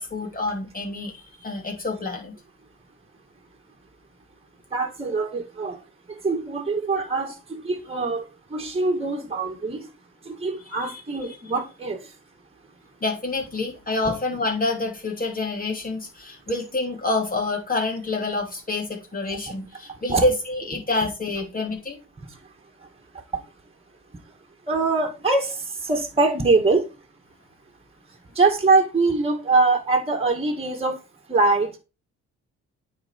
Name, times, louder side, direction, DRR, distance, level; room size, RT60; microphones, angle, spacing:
voice 1, 0.0-2.3 10.9-11.0 13.0-22.0, left 2 dB, 30° left, 3.0 m, -27 dB
voice 2, 4.7-5.8 6.1-9.9 10.2-12.1 19.3-19.4 20.1-20.2 22.3-22.4 23.3-23.4 24.7-26.9 28.3-31.0 31.3-31.7, right 3 dB, 20° right, 2.1 m, -23 dB
9.3 x 4.5 x 4.5 m
cardioid pair, 90°, 30 cm